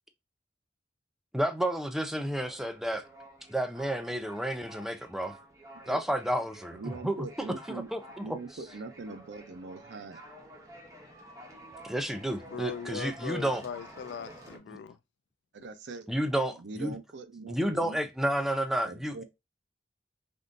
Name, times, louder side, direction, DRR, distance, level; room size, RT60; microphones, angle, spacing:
voice 1, 1.3-3.0 3.5-5.3 5.9-6.8 7.0-8.4 11.8-13.6 14.7-14.8 16.1-16.9 17.5-19.2, right 1 dB, ahead, 0.4 m, -31 dB
sound 1, 2.3-14.6, right 1 dB, 20° right, 0.9 m, -51 dB
voice 2, 6.7-7.9 8.2-10.2 15.5-16.1 16.6-18.0 18.9-19.2, right 3 dB, 80° right, 0.5 m, -42 dB
voice 3, 12.5-15.0, left 6 dB, 75° left, 0.3 m, -39 dB
3.5 x 2.5 x 2.5 m
head